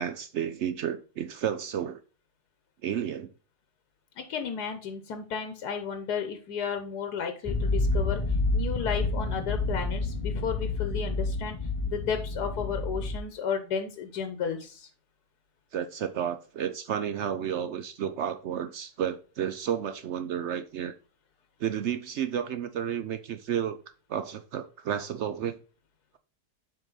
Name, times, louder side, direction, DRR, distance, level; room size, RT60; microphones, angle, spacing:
voice 1, 0.0-2.0 2.8-3.3 15.7-20.9 21.6-23.8 24.1-25.6, right 9 dB, 75° right, 0.6 m, -31 dB
voice 2, 4.2-8.2 8.5-11.6 11.9-14.9, left 7 dB, 80° left, 1.4 m, -33 dB
sound 1, 7.5-13.2, left 2 dB, 60° left, 0.3 m, -29 dB
7.6 x 4.8 x 3.9 m
omnidirectional pair, 1.7 m